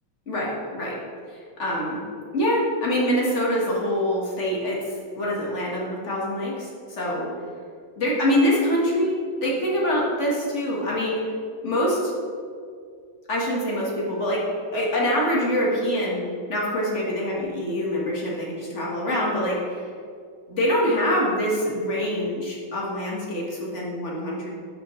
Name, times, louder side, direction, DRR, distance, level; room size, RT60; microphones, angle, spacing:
voice 1, 0.3-1.0 1.6-2.0 2.3-7.3 8.0-11.2 11.6-12.1 13.3-14.4 14.7-19.8 20.5-24.5, equal, 40° left, -4 dB, 1.5 m, -25 dB
11.0 x 5.2 x 3.1 m, 2.2 s
omnidirectional pair, 2.2 m